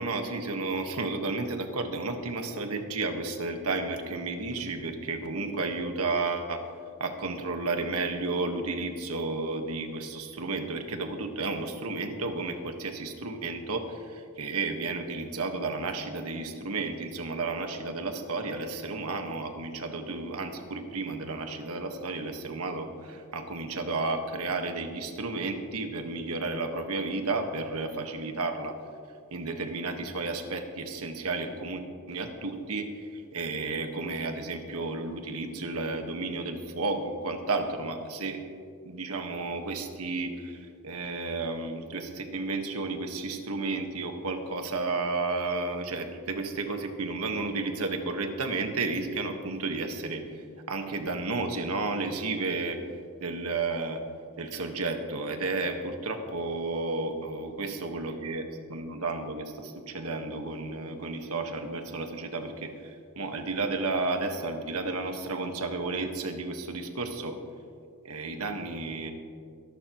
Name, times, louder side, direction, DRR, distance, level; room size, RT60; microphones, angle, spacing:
voice 1, 0.0-6.6 7.0-28.8 29.3-31.8 32.1-38.4 38.8-50.2 50.7-52.8 53.2-54.0 54.4-67.4 68.0-69.1, right 3 dB, 90° right, 5 dB, 1.5 m, -32 dB
23.0 x 12.0 x 3.1 m, 2.3 s
head